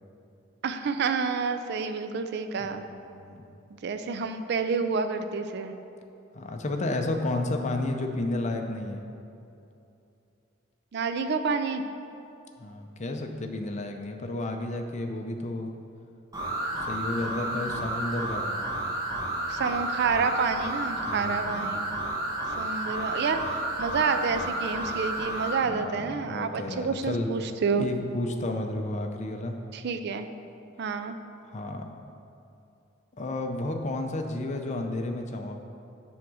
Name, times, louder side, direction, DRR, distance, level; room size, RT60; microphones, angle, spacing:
voice 1, 0.6-2.8 3.8-5.7 10.9-11.8 17.4-18.0 19.5-21.9 22.6-27.9 29.7-30.3 30.8-31.2, right 5 dB, 55° right, 8 dB, 0.4 m, -29 dB
voice 2, 2.6-3.5 6.3-9.0 12.6-15.7 16.9-18.8 21.1-21.8 25.6-27.3 27.7-29.6 31.4-31.8 33.2-35.6, left 2 dB, 35° left, 4 dB, 0.5 m, -32 dB
sound 1, 16.3-25.6, right 1 dB, 20° right, 1.3 m, -31 dB
7.4 x 3.6 x 6.2 m, 2.7 s
head